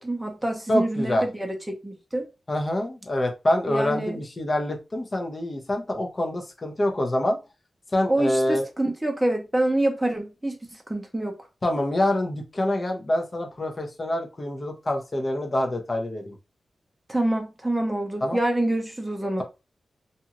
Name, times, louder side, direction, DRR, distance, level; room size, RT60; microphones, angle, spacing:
voice 1, 0.0-2.3 3.6-4.2 8.1-10.6 10.9-11.4 17.1-19.4, right 1 dB, 10° right, 0.7 m, -26 dB
voice 2, 0.7-1.2 2.5-7.4 7.9-8.7 11.6-16.3 18.2-18.4, left 1 dB, 35° left, 0.8 m, -26 dB
2.7 x 2.4 x 2.8 m
cardioid pair, 80°, 0 cm